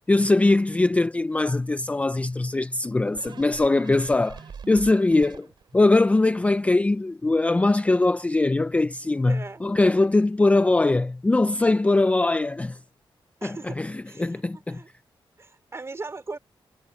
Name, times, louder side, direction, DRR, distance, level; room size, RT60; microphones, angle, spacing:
voice 1, 0.1-5.5 5.7-12.8 13.4-14.8, left 2 dB, 15° left, 0.4 m, -21 dB
sound 1, 3.2-5.9 6.3-6.4, right 6 dB, 60° right, 2.7 m, -44 dB
voice 2, 9.3-9.6 13.4-13.8 14.1-14.9 15.4-16.4, right 3 dB, 30° right, 4.3 m, -38 dB
wide cardioid pair, 130°, 9 cm